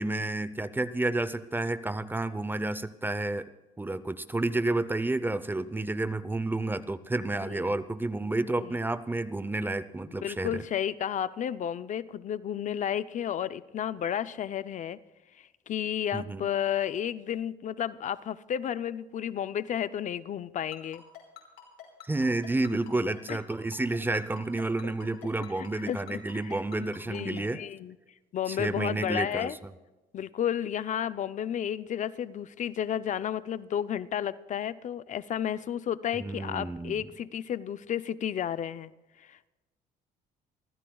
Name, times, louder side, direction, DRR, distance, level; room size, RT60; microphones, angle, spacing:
voice 1, 0.0-3.5 3.8-10.6 16.1-16.5 22.1-27.6 28.5-29.6 36.2-37.1, right 2 dB, 10° right, 15 dB, 0.6 m, -30 dB
voice 2, 10.1-15.0 15.7-21.0 23.3-23.4 24.8-24.9 25.6-26.6 27.1-27.9 28.3-29.6 30.1-38.9 39.2-39.5, left 9 dB, 45° left, 14 dB, 0.6 m, -32 dB
Ringtone, 20.7-27.4, left 12 dB, 80° left, 5.3 m, -46 dB
28.5 x 15.0 x 2.3 m, 1.1 s
cardioid pair, 110°, 17 cm